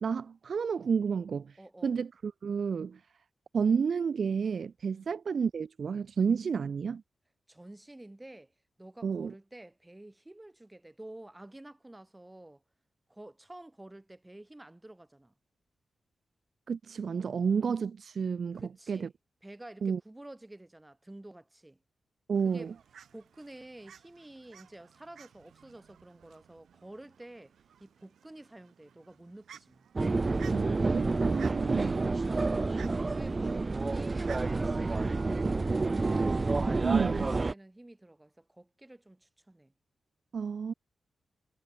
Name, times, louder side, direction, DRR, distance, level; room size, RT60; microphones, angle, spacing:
voice 1, 0.0-1.6 1.8-3.0 3.5-7.0 9.0-9.3 16.7-19.1 19.8-20.0 22.3-22.7 30.5-32.5 36.8-37.3 40.3-40.7, right 6 dB, 60° right, 0.4 m, -31 dB
voice 2, 1.6-1.9 4.9-5.1 7.5-8.5 8.8-12.6 13.1-15.3 18.5-19.1 19.4-21.8 22.4-22.7 23.1-29.9 33.1-36.3 36.6-39.7, right 1 dB, 15° right, 4.8 m, -50 dB
Fowl, 22.3-36.0, right 8 dB, 90° right, 5.0 m, -56 dB
sound 1, 30.0-37.5, right 3 dB, 30° right, 0.7 m, -29 dB
wide cardioid pair, 105°, 0 cm